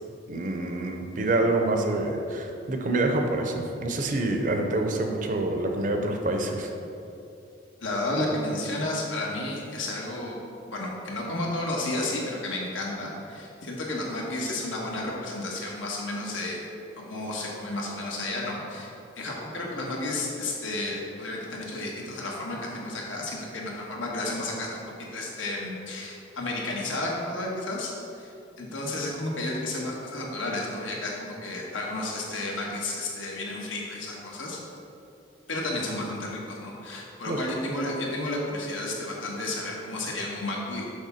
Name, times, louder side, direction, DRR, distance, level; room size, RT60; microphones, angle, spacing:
voice 1, 0.3-6.7 37.3-37.4, right 2 dB, 45° right, 3 dB, 0.5 m, -27 dB
voice 2, 7.8-10.4 10.7-16.6 17.0-28.3 28.6-34.6 35.5-40.8, left 2 dB, 90° left, -2 dB, 1.2 m, -32 dB
6.5 x 3.5 x 5.6 m, 2.7 s
head